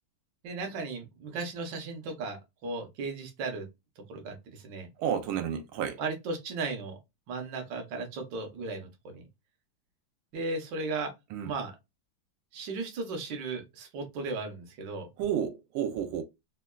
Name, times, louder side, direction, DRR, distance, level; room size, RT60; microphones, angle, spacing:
voice 1, 0.4-3.7 4.1-4.9 6.0-7.0 7.3-9.2 10.3-11.1 11.4-11.7 12.5-15.1, right 3 dB, 65° right, 1.4 m, -36 dB
voice 2, 5.0-6.0 11.3-11.5 15.2-16.2, right 9 dB, 90° right, 1.4 m, -31 dB
3.6 x 2.3 x 2.2 m
omnidirectional pair, 2.2 m